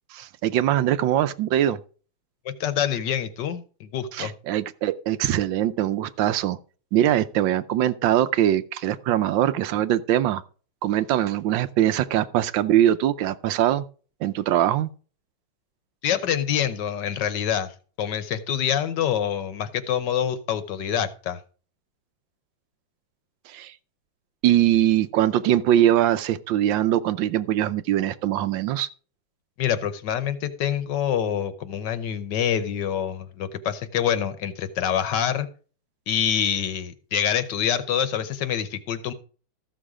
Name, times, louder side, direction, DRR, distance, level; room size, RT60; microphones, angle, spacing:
voice 1, 0.1-1.8 4.1-6.6 6.9-10.4 10.8-13.8 14.2-14.9 23.5-23.7 24.4-28.9, right 12 dB, 75° right, 1.3 m, -22 dB
voice 2, 2.4-4.3 16.0-17.7 18.0-21.4 29.6-35.5 36.1-39.1, left 9 dB, 65° left, 1.4 m, -26 dB
14.0 x 6.4 x 4.9 m
omnidirectional pair, 2.2 m